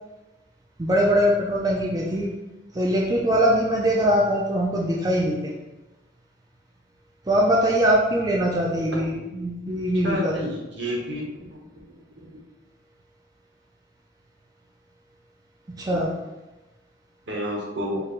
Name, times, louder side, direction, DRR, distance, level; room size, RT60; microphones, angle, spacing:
voice 1, 0.8-2.3 2.7-5.5 7.3-10.4 15.7-16.1, equal, 20° right, -2 dB, 0.4 m, -22 dB
voice 2, 10.0-11.2 12.3-12.4 15.9-16.0 17.3-18.0, equal, 70° right, -2 dB, 1.1 m, -29 dB
4.6 x 3.3 x 2.5 m, 1.0 s
head